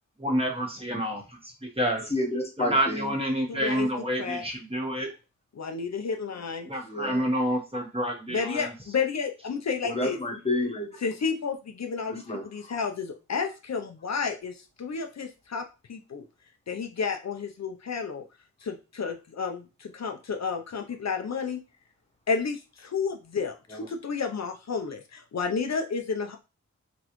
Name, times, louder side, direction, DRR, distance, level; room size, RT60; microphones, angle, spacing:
voice 1, 0.2-2.0 2.6-5.1 6.7-8.7, equal, 20° right, 1.3 m, -28 dB
voice 2, 2.1-3.1 6.9-7.3 9.8-10.9 12.1-12.5 23.7-23.9, left 1 dB, 20° left, 1.1 m, -30 dB
voice 3, 3.5-3.9 4.2-4.4 5.6-6.7 8.3-10.2 11.0-16.2 16.7-18.2 18.6-21.6 22.3-26.4, left 5 dB, 60° left, 0.6 m, -31 dB
4.1 x 3.8 x 3.0 m
wide cardioid pair, 130°, 30 cm